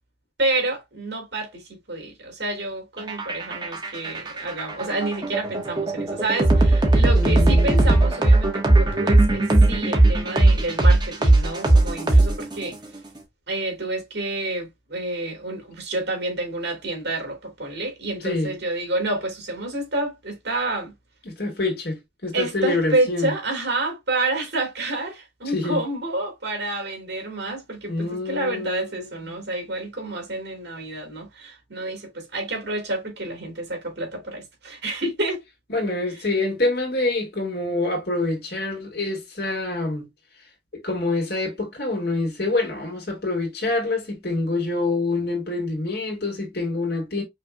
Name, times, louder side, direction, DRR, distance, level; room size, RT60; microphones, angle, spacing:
voice 1, 0.4-12.8 13.5-20.9 22.3-35.4, right 2 dB, 65° right, 2.9 m, -29 dB
sound 1, 3.0-12.7, right 2 dB, 25° right, 1.4 m, -18 dB
voice 2, 7.1-8.2 18.2-18.5 21.2-23.4 25.4-25.8 27.9-29.4 35.7-40.0 40.7-47.2, left 2 dB, 60° left, 2.4 m, -26 dB
5.7 x 3.5 x 2.3 m
head